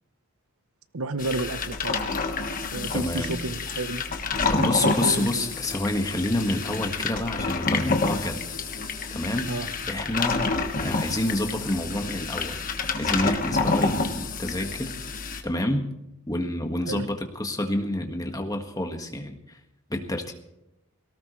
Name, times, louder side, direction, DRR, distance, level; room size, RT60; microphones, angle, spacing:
voice 1, 0.9-2.1 2.7-4.0 4.6-5.3 9.5-9.7 16.9-17.1, right 2 dB, 80° right, 12 dB, 1.0 m, -31 dB
sound 1, 1.2-15.4, left 3 dB, 40° left, 1.4 m, -28 dB
voice 2, 2.9-3.3 4.5-8.4 9.1-9.5 9.9-10.5 10.8-12.6 13.0-14.9 15.4-15.9 16.3-19.6 19.9-20.3, left 1 dB, 15° left, 4 dB, 1.6 m, -28 dB
18.5 x 17.5 x 3.2 m, 0.88 s
head